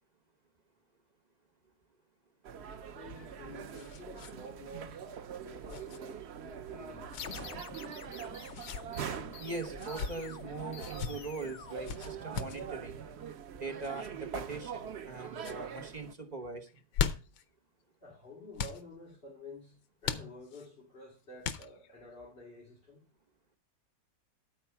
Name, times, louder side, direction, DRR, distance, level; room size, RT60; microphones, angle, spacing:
sound 1, 2.4-16.1, right 8 dB, 85° right, 0.5 m, -43 dB
voice 1, 2.8-5.1 5.4-7.7 18.0-23.0, left 2 dB, 30° left, 2.8 m, -50 dB
sound 2, 3.0-4.3 4.6-4.8 5.7-6.0 7.1-7.5 8.4-8.8 9.7-10.1 10.8-11.1 11.8-12.6 13.8-14.1 14.7-15.1 15.4-15.6 16.7-17.4 18.5-18.8 20.0-20.7 21.4-22.0, left 8 dB, 85° left, 1.5 m, -38 dB
sound 3, 7.2-12.6, left 7 dB, 55° left, 0.9 m, -48 dB
voice 2, 9.4-13.0 13.5-16.7, right 3 dB, 40° right, 0.6 m, -41 dB
13.0 x 4.6 x 5.7 m
omnidirectional pair, 2.0 m